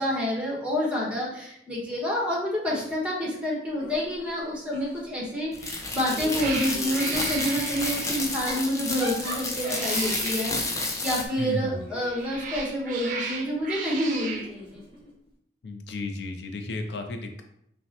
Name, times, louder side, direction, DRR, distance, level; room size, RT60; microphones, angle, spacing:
voice 1, 0.0-14.8, equal, 5° right, -4 dB, 1.1 m, -28 dB
Giggle / Chuckle chortle, 3.8-5.4 5.8-7.2 8.2-12.7 13.7-15.1, equal, 30° right, 1.2 m, -41 dB
sound 1, 5.5-11.3, left 2 dB, 20° left, 0.5 m, -30 dB
Cat, 5.6-5.9 6.3-8.4 9.5-10.6 11.9-14.5, right 4 dB, 45° right, 0.5 m, -35 dB
voice 2, 11.4-11.8 15.6-17.4, left 2 dB, 70° left, 5 dB, 0.4 m, -33 dB
5.6 x 2.1 x 2.8 m, 0.75 s
head